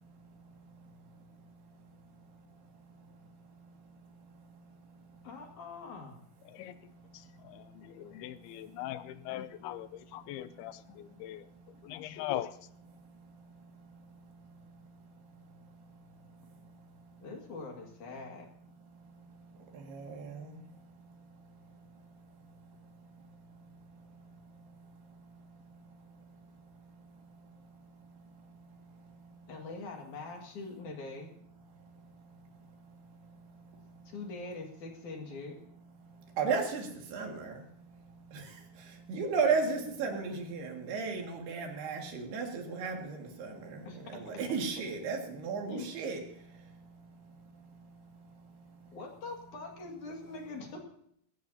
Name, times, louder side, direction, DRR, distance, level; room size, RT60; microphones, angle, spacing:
voice 1, 5.2-6.2 17.2-18.5 29.5-31.3 34.1-35.6 43.8-44.0 45.7-45.9 48.9-50.8, left 3 dB, 55° left, 1 dB, 3.3 m, -43 dB
voice 2, 8.0-9.9 10.1-10.7 11.2-11.4 11.9-12.5, left 13 dB, 85° left, 14 dB, 2.5 m, -39 dB
voice 3, 19.7-20.6 36.4-37.6 38.3-46.2, right 5 dB, 85° right, 2 dB, 4.1 m, -34 dB
21.0 x 16.0 x 2.8 m, 0.69 s
omnidirectional pair, 4.5 m